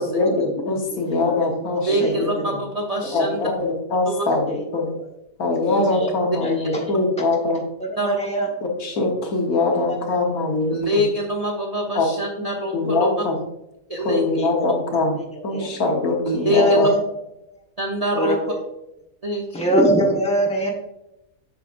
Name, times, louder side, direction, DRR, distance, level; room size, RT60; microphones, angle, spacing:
voice 1, 0.0-2.6 3.1-4.9 5.4-7.6 8.6-11.0 12.0-12.1 12.7-13.4 14.0-15.2 15.4-16.9, left 3 dB, 70° left, 1 dB, 1.6 m, -22 dB
voice 2, 0.9-1.3 1.9-2.4 3.1-3.3 4.5-4.9 5.7-6.1 6.4-6.9 7.8-8.5 9.9-10.0 14.4-14.8 15.1-15.7 16.4-17.0 18.1-18.6 19.5-20.7, right 1 dB, 5° left, -2 dB, 1.2 m, -24 dB
voice 3, 1.9-3.4 4.1-4.2 8.0-8.2 10.7-13.1 13.9-14.4 16.2-16.9 17.8-18.4 19.2-19.6, right 1 dB, 35° right, 1 dB, 0.6 m, -24 dB
8.2 x 6.1 x 2.5 m, 0.88 s
omnidirectional pair, 1.6 m